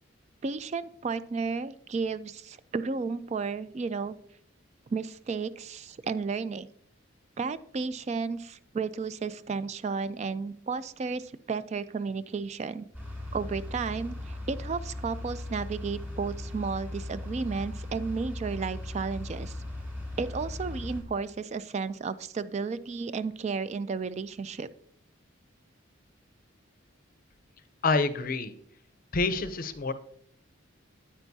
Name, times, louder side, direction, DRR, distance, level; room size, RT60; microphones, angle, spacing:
voice 1, 0.4-4.1 4.9-6.7 7.4-12.9 13.3-19.6 20.2-24.7, right 4 dB, 35° right, 14 dB, 0.3 m, -33 dB
sound 1, 12.9-21.0, left 1 dB, 10° right, 2.6 m, -38 dB
voice 2, 27.8-28.5 29.1-29.9, left 3 dB, 45° left, 11 dB, 0.6 m, -27 dB
9.1 x 8.8 x 2.7 m, 0.65 s
head